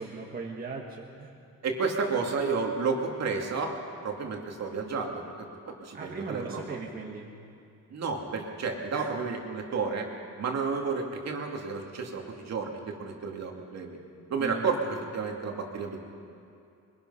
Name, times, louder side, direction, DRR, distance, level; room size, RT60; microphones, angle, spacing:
voice 1, 0.0-1.4 5.9-7.3 8.9-9.2 14.4-14.7, right 4 dB, 25° right, -1 dB, 1.6 m, -39 dB
voice 2, 1.6-3.7 4.0-5.2 5.6-6.6 7.9-10.1 10.4-14.0 14.3-16.0, right 4 dB, 50° right, 1 dB, 2.6 m, -31 dB
23.5 x 22.5 x 5.7 m, 2.6 s
cardioid pair, 165°, 33 cm